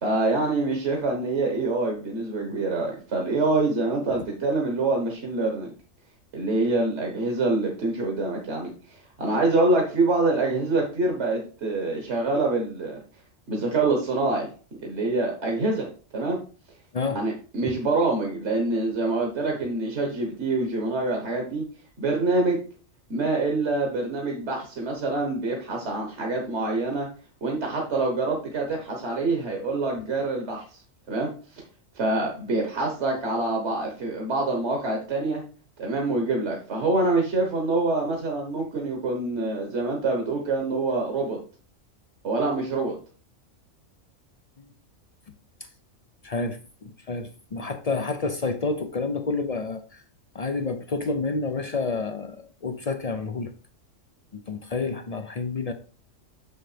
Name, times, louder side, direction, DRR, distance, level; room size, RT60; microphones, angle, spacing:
voice 1, 0.0-5.7 6.3-13.0 13.5-14.5 14.8-15.9 16.1-16.4 17.1-21.6 22.0-22.6 23.1-27.1 27.4-30.8 31.1-31.6 31.9-35.4 35.8-41.4 42.2-42.9, right 2 dB, 60° right, 1 dB, 1.5 m, -25 dB
voice 2, 46.2-50.0 50.3-53.5 54.3-55.7, left 3 dB, 60° left, 8 dB, 0.4 m, -29 dB
6.6 x 6.4 x 3.3 m, 0.38 s
omnidirectional pair, 1.4 m